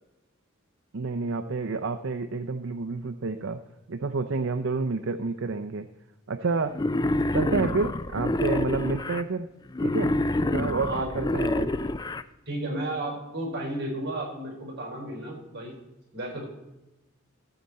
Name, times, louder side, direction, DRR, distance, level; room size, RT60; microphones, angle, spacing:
voice 1, 0.9-3.6 3.9-5.9 6.3-6.8 7.3-9.5 9.8-10.1 10.4-11.7, right 4 dB, 65° right, 8 dB, 0.6 m, -29 dB
Wild animals, 6.7-9.2 9.7-12.2, left 2 dB, 20° left, 0.4 m, -27 dB
voice 2, 10.8-11.1 12.5-15.7 16.1-16.4, right 1 dB, 50° right, 0 dB, 4.4 m, -33 dB
15.5 x 7.7 x 4.2 m, 0.96 s
head